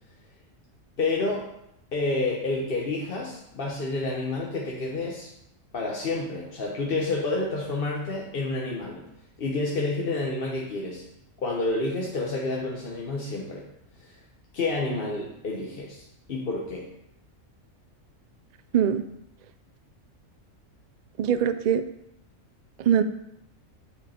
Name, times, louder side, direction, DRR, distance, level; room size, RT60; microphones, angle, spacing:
voice 1, 1.0-1.5 1.9-5.3 5.7-9.1 9.4-11.0 11.4-13.7 14.0-14.1 14.5-16.9, left 2 dB, 45° left, -2 dB, 1.1 m, -29 dB
voice 2, 18.7-19.0 21.2-21.8 22.8-23.0, right 9 dB, 85° right, 11 dB, 0.3 m, -22 dB
9.2 x 5.1 x 4.3 m, 0.79 s
omnidirectional pair, 1.4 m